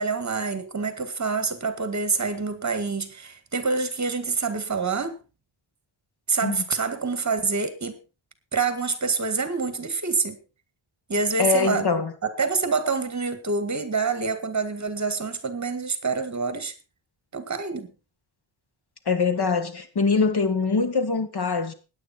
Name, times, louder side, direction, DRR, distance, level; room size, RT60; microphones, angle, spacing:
voice 1, 0.0-5.2 6.3-8.0 8.5-10.4 11.1-11.9 12.4-16.7 17.3-17.9, right 4 dB, 35° right, 1.9 m, -26 dB
voice 2, 11.4-12.1 19.1-21.7, left 4 dB, 50° left, 2.1 m, -23 dB
17.0 x 10.5 x 4.4 m
wide cardioid pair, 155°, 50 cm